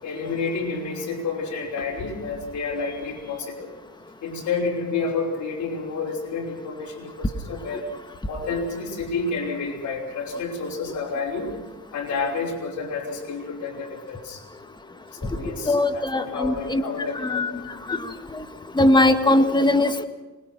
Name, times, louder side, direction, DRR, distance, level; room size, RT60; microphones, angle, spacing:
voice 1, 0.0-3.7 4.2-7.8 8.3-11.5 11.9-14.4 15.1-17.7, left 4 dB, 70° left, -1 dB, 5.7 m, -30 dB
voice 2, 15.7-16.8 17.2-17.5 17.9-18.0 18.8-20.0, left 1 dB, 15° left, 8 dB, 1.7 m, -20 dB
25.5 x 20.5 x 6.0 m, 1.1 s
cardioid pair, 90°, 30 cm